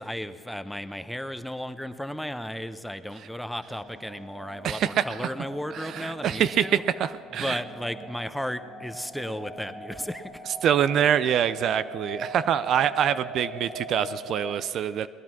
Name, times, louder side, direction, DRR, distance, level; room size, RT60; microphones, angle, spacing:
voice 1, 0.0-6.8 7.4-10.4, equal, ahead, 10 dB, 0.8 m, -34 dB
sound 1, 3.7-14.6, right 1 dB, 45° right, 2.6 m, -41 dB
voice 2, 4.6-5.0 5.7-7.6 10.6-15.1, right 9 dB, 60° right, 14 dB, 0.4 m, -25 dB
19.5 x 11.0 x 5.9 m, 2.2 s
supercardioid pair, 80°, 0 cm